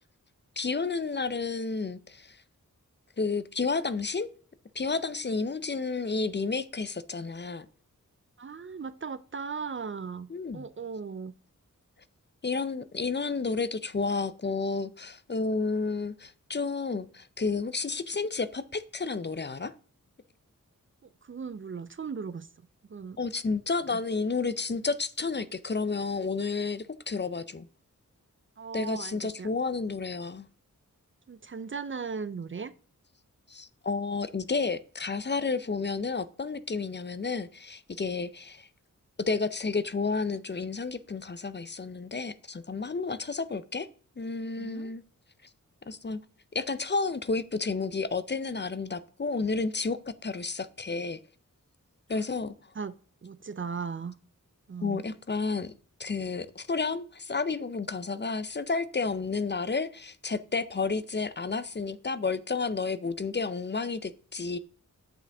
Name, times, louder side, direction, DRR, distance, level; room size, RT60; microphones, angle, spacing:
voice 1, 0.6-2.4 3.2-4.3 4.7-7.7 10.3-10.7 12.4-19.7 23.2-27.7 28.7-30.5 33.5-38.7 39.2-43.9 44.2-45.0 45.9-46.2 46.5-51.2 52.1-52.5 54.8-55.7 56.0-64.6, left 4 dB, 35° left, 0.5 m, -31 dB
voice 2, 8.4-11.3 21.0-22.5 22.9-23.2 23.9-24.0 28.6-29.5 31.3-32.7 44.6-44.9 52.1-52.2 52.7-52.9 53.2-54.1 54.7-55.0, right 5 dB, 40° right, 0.5 m, -37 dB
8.6 x 7.1 x 3.4 m
wide cardioid pair, 95°, 32 cm